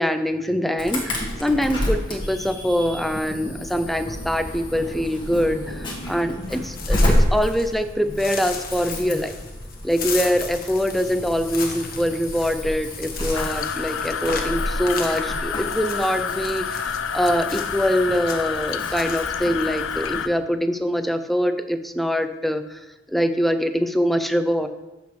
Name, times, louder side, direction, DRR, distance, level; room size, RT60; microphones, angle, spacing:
voice 1, 0.0-9.4 9.8-22.8 23.1-24.7, equal, ahead, 8 dB, 0.4 m, -24 dB
Insect / Alarm, 0.8-20.2, left 1 dB, 25° left, 1.7 m, -29 dB
sound 1, 6.4-7.8 8.2-17.0 17.5-17.9 18.2-18.6 18.9-19.2, left 5 dB, 50° left, 1.2 m, -35 dB
sound 2, 13.3-20.3, left 7 dB, 80° left, 0.4 m, -29 dB
14.0 x 6.2 x 3.2 m, 1.1 s
head